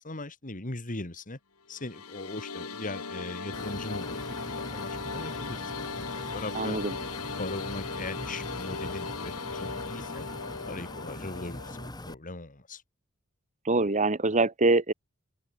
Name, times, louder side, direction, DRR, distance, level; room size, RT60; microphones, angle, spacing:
voice 1, 0.0-1.4 1.7-5.7 6.3-6.8 7.4-10.3 10.7-12.8, left 2 dB, 40° left, 2.4 m, -39 dB
sound 1, 1.7-11.9, left 4 dB, 85° left, 2.3 m, -38 dB
sound 2, 3.5-12.1, left 1 dB, 20° left, 2.1 m, -42 dB
voice 2, 6.5-6.9 13.6-14.9, right 3 dB, 35° right, 1.8 m, -24 dB
open air
head